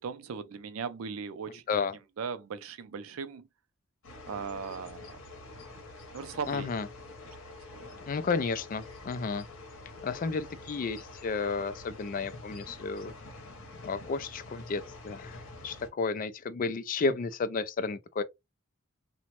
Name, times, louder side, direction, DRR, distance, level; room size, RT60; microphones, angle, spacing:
voice 1, 0.0-1.6 2.2-3.5 4.3-5.2 6.1-6.7 7.7-7.9, right 6 dB, 85° right, 0.4 m, -38 dB
sound 1, 4.0-15.9, left 2 dB, 65° left, 0.9 m, -47 dB
voice 2, 6.5-6.9 8.1-9.5 10.0-13.1 13.8-18.2, left 4 dB, 40° left, 0.3 m, -32 dB
2.9 x 2.1 x 2.9 m
head